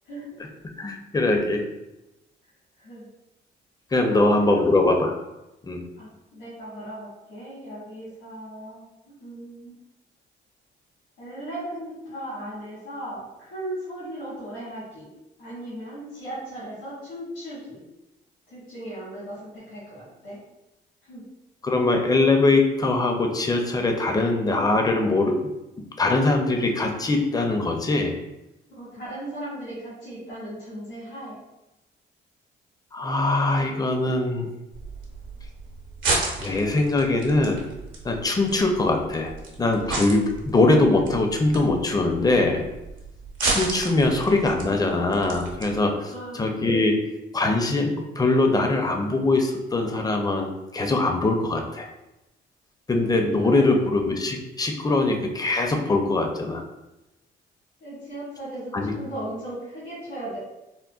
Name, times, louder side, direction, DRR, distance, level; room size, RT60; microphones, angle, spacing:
voice 1, 0.0-0.4 2.8-3.0 4.1-4.7 6.0-9.7 11.2-15.1 15.4-17.8 18.5-20.4 21.0-21.2 28.7-31.3 46.1-46.4 53.4-53.7 57.8-60.4, right 1 dB, 85° left, -9 dB, 1.5 m, -37 dB
voice 2, 0.8-1.6 3.9-5.1 5.6-5.8 21.6-25.5 26.0-28.1 32.9-34.5 36.4-37.6 38.0-39.3 39.6-42.6 43.4-46.9 47.3-50.5 50.7-51.9 52.9-56.6 58.7-58.9, left 2 dB, 20° left, 3 dB, 0.4 m, -22 dB
sound 1, 34.7-45.8, right 3 dB, 70° right, 0.8 m, -33 dB
3.7 x 2.1 x 2.3 m, 0.96 s
cardioid pair, 90°, 20 cm